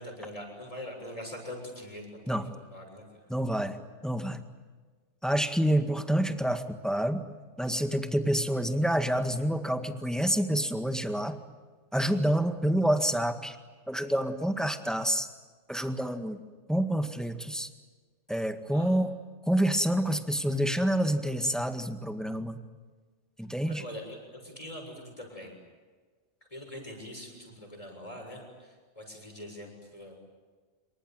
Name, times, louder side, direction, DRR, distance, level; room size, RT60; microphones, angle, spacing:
voice 1, 0.0-2.4 2.7-3.3 18.7-18.9 23.7-25.5 26.5-30.1, left 1 dB, 30° left, 2 dB, 7.2 m, -43 dB
voice 2, 3.3-4.4 5.2-7.3 7.6-11.4 11.9-13.6 13.9-15.3 15.7-16.4 16.7-17.7 18.3-19.1 19.5-22.6 23.4-23.8, equal, ahead, 7 dB, 1.8 m, -28 dB
26.5 x 24.5 x 9.1 m, 1.4 s
omnidirectional pair, 1.2 m